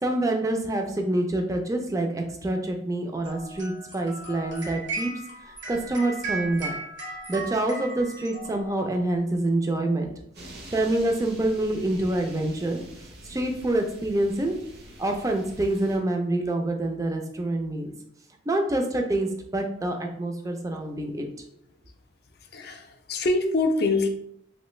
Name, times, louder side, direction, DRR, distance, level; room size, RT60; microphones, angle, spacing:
voice 1, 0.0-5.1 5.5-6.8 7.3-10.1 10.7-12.8 13.2-14.5 15.0-17.9 18.5-21.3, right 1 dB, 20° right, 3 dB, 0.4 m, -26 dB
sound 1, 3.2-9.1, right 3 dB, 80° right, 1.1 m, -36 dB
sound 2, 10.3-16.0, right 1 dB, 55° right, 0.7 m, -46 dB
voice 2, 22.5-24.1, left 2 dB, 55° left, 5 dB, 0.4 m, -24 dB
3.1 x 2.5 x 3.0 m, 0.72 s
head